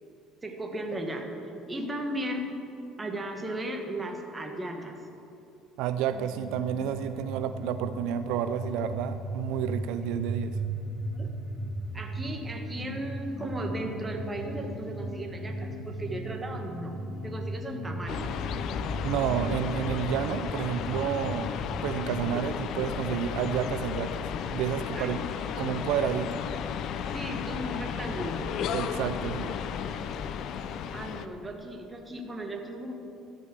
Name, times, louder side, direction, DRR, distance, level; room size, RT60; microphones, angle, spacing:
voice 1, 0.4-1.3 1.7-2.6 3.0-5.0 11.1-11.3 11.9-18.3 22.3-22.4 24.9-25.1 27.1-28.5 30.9-32.9, right 1 dB, 15° right, 3 dB, 1.4 m, -36 dB
voice 2, 5.8-10.6 19.0-21.5 21.8-24.2 24.5-25.2 25.6-26.4 28.7-29.6, right 9 dB, 75° right, 10 dB, 0.4 m, -30 dB
sound 1, 6.1-22.6, right 1 dB, 35° left, 2.2 m, -37 dB
sound 2, 18.1-31.3, left 7 dB, 55° left, 0.6 m, -33 dB
13.0 x 5.4 x 8.1 m, 2.8 s
cardioid pair, 125°, 0 cm